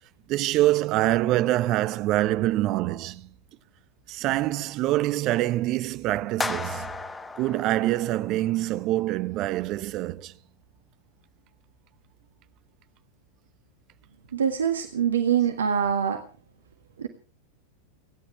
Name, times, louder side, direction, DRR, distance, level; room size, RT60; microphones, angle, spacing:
voice 1, 0.3-3.3 4.1-6.9 7.4-10.3, right 16 dB, 40° right, 0.8 m, -25 dB
sound 1, 6.4-8.6, left 3 dB, 10° left, 1.1 m, -34 dB
voice 2, 14.3-16.2 17.0-17.1, right 8 dB, 65° right, 1.7 m, -24 dB
29.5 x 11.0 x 3.3 m
figure-of-eight pair, 90°, 0 cm